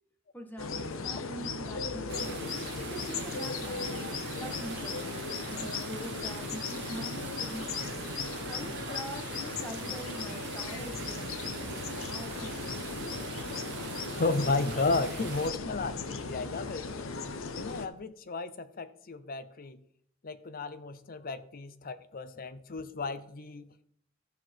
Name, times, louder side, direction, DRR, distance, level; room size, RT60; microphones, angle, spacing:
voice 1, 0.3-2.4 2.8-4.0 4.4-5.2 5.5-12.9 13.6-13.7 23.0-23.1, equal, 10° left, 4 dB, 1.4 m, -44 dB
sound 1, 0.6-17.9, left 4 dB, 75° left, 0.8 m, -37 dB
sound 2, 2.1-15.5, right 6 dB, 60° right, 0.9 m, -42 dB
voice 2, 14.2-16.9 17.5-19.8 20.2-23.7, left 3 dB, 45° left, 13 dB, 0.7 m, -33 dB
14.0 x 6.0 x 4.5 m, 0.66 s
head